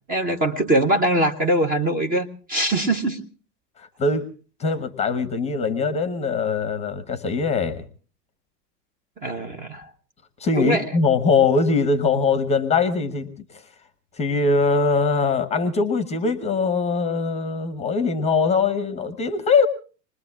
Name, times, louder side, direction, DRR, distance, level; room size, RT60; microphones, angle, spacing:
voice 1, 0.1-3.2 9.2-9.9 10.6-10.9, right 1 dB, 15° right, 5 dB, 0.9 m, -22 dB
voice 2, 3.8-4.3 4.6-7.8 10.4-13.3 14.2-19.7, left 4 dB, 15° left, 12 dB, 0.9 m, -22 dB
27.0 x 20.5 x 2.4 m, 0.37 s
figure-of-eight pair, 105°, 50 cm